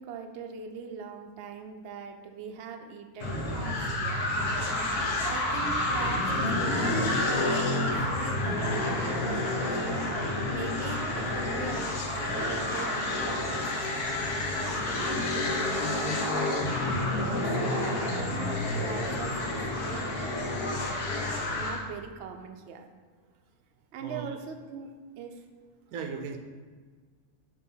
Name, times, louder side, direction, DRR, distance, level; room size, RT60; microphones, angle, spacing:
voice 1, 0.0-20.6 21.1-22.9 23.9-25.4, right 6 dB, 65° right, 5 dB, 0.7 m, -41 dB
sound 1, 3.2-21.8, left 2 dB, 80° left, 1.5 m, -29 dB
voice 2, 24.0-24.3 25.9-26.4, right 6 dB, 80° right, 5 dB, 1.1 m, -37 dB
6.5 x 2.8 x 5.4 m, 1.5 s
omnidirectional pair, 1.6 m